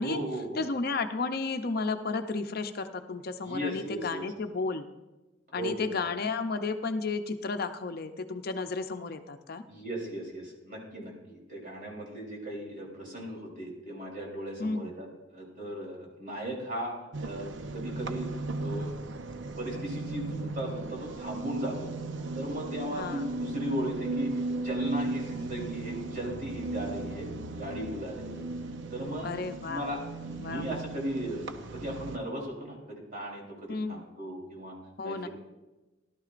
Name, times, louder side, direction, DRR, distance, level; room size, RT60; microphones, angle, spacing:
voice 1, 0.0-0.6 3.4-4.2 5.5-5.9 9.7-15.1 15.3-18.9 19.6-21.9 22.3-28.4 28.9-29.3 29.6-34.8 35.0-35.3, right 1 dB, 45° right, -2 dB, 3.5 m, -37 dB
voice 2, 0.6-4.9 5.5-9.6 14.6-15.0 22.9-23.2 29.2-29.8 30.4-30.8 33.7-34.0 35.0-35.3, left 4 dB, 50° left, 7 dB, 0.6 m, -33 dB
sound 1, 17.1-32.2, right 2 dB, 70° right, 0.6 m, -36 dB
16.5 x 12.0 x 2.5 m, 1.1 s
head